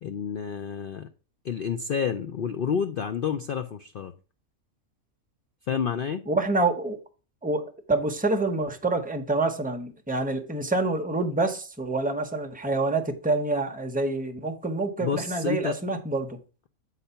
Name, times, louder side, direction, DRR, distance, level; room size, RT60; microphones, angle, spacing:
voice 1, 0.0-1.1 1.4-4.1 5.7-6.2 15.0-15.8, left 7 dB, 70° left, 0.5 m, -29 dB
voice 2, 6.3-7.0 7.4-16.4, right 2 dB, 10° right, 0.5 m, -27 dB
8.2 x 4.1 x 5.5 m
omnidirectional pair, 1.5 m